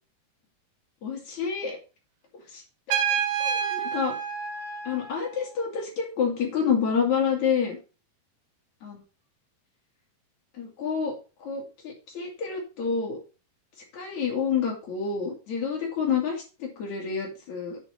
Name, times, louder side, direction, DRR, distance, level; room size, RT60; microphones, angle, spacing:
voice 1, 1.0-1.8 2.5-2.6 2.9-3.0 3.4-4.2 4.8-7.8 8.8-9.0 10.6-11.1 11.4-13.2 13.9-17.8, left 6 dB, 50° left, 0 dB, 3.3 m, -28 dB
Trumpet, 2.9-5.5, right 8 dB, 65° right, 2.7 m, -29 dB
9.0 x 5.0 x 5.1 m, 0.32 s
omnidirectional pair, 4.4 m